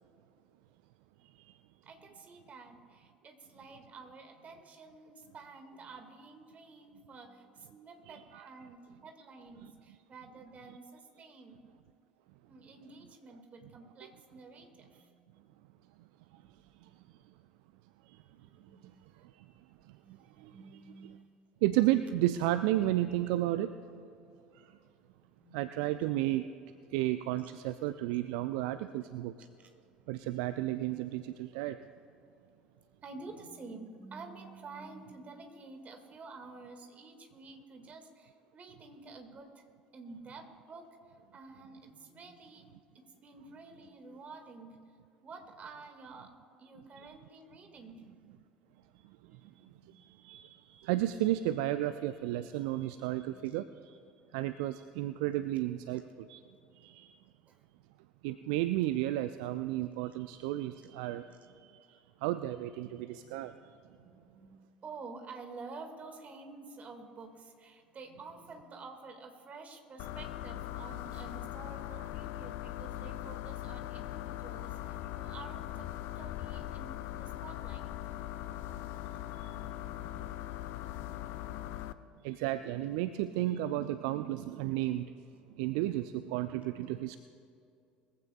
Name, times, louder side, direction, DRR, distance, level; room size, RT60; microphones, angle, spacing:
voice 1, 1.8-11.6 12.4-15.3 16.3-16.8 18.2-21.3 25.3-25.6 26.1-26.2 29.6-29.7 33.0-39.6 39.9-44.8 45.2-48.5 49.2-50.2 53.3-53.6 55.3-55.6 57.5-57.6 61.1-61.4 63.9-75.9 76.1-78.0 78.4-78.7 79.9-80.9 81.6-81.7 85.5-85.7, right 3 dB, 30° right, 5 dB, 1.9 m, -50 dB
voice 2, 21.6-23.7 25.5-26.4 26.9-29.3 30.1-31.8 50.1-53.7 54.3-56.4 56.8-57.1 58.2-61.3 61.6-61.7 62.2-63.5 82.2-85.1 85.6-87.2, right 14 dB, 60° right, 12 dB, 0.4 m, -32 dB
sound 1, 70.0-81.9, left 13 dB, 55° left, 0.5 m, -40 dB
21.5 x 15.0 x 2.3 m, 2.6 s
figure-of-eight pair, 65°, 5 cm